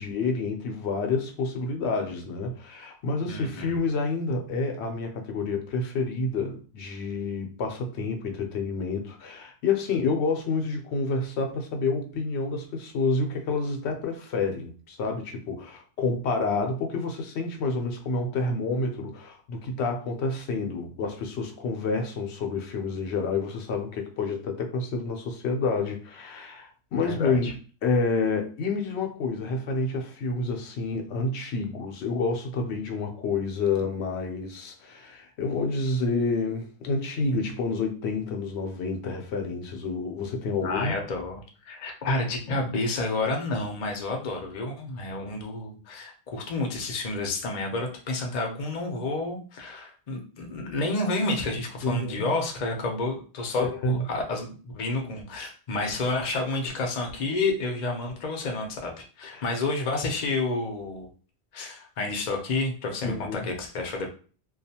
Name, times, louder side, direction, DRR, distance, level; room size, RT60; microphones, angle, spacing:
voice 1, 0.0-27.5 27.8-40.9 51.8-52.3 53.5-54.0 59.2-59.4 63.0-63.5, left 3 dB, 80° left, 3 dB, 0.9 m, -29 dB
voice 2, 3.3-3.7 27.0-27.5 40.6-58.9 59.2-61.1 61.5-64.1, left 2 dB, 45° left, 2 dB, 0.6 m, -30 dB
2.4 x 2.3 x 2.7 m, 0.38 s
omnidirectional pair, 1.1 m